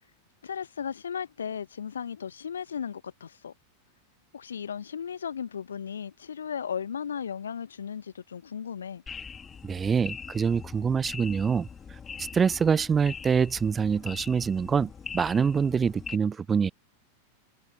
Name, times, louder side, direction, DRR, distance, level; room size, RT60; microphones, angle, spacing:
voice 1, 0.4-3.5 4.3-9.0, left 7 dB, 70° left, 1.1 m, -35 dB
sound 1, 9.1-16.2, left 6 dB, 20° left, 2.2 m, -42 dB
voice 2, 9.6-11.7 12.3-16.7, right 6 dB, 20° right, 0.4 m, -25 dB
figure-of-eight pair, 90°, 0 cm